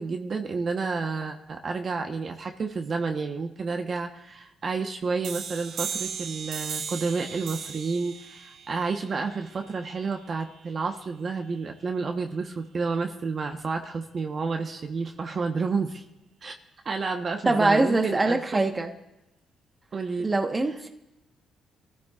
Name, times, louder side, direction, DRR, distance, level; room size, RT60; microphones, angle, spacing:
voice 1, 0.0-16.0 16.4-16.5 16.8-18.6 19.9-20.3, right 4 dB, 45° right, 4 dB, 1.1 m, -30 dB
sound 1, 5.2-10.6, right 7 dB, 75° right, 1.1 m, -37 dB
voice 2, 17.4-18.9 20.2-20.9, right 2 dB, 20° right, 4 dB, 1.2 m, -23 dB
26.0 x 14.0 x 2.5 m, 0.95 s
cardioid pair, 90°, 0 cm